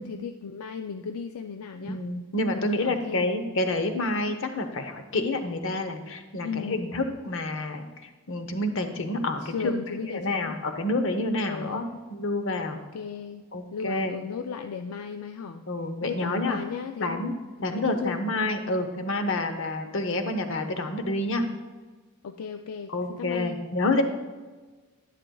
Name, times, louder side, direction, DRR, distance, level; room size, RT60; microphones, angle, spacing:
voice 1, 0.0-2.0 2.7-3.3 6.4-6.9 8.8-10.6 11.4-11.9 12.7-13.4 13.7-15.6 16.0-17.3 17.7-18.2 22.2-23.6, left 6 dB, 75° left, 7 dB, 0.4 m, -36 dB
voice 2, 1.8-9.7 10.1-12.8 13.5-14.1 15.7-16.6 17.0-17.3 17.6-21.4 22.9-24.0, left 2 dB, 55° left, 7 dB, 0.8 m, -28 dB
10.5 x 10.0 x 2.3 m, 1.3 s
head